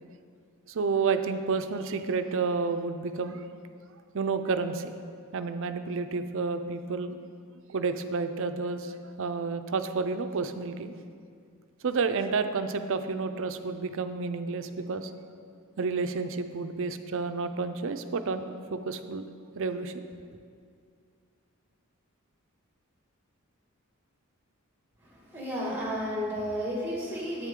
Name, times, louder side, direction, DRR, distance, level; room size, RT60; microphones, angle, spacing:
voice 1, 0.7-3.4 4.1-4.9 5.3-7.2 7.7-10.9 11.8-15.1 15.8-19.3 19.6-20.1, right 4 dB, 65° right, 9 dB, 0.5 m, -30 dB
voice 2, 25.0-27.5, equal, 10° right, -4 dB, 2.0 m, -32 dB
10.5 x 8.4 x 3.7 m, 2.2 s
head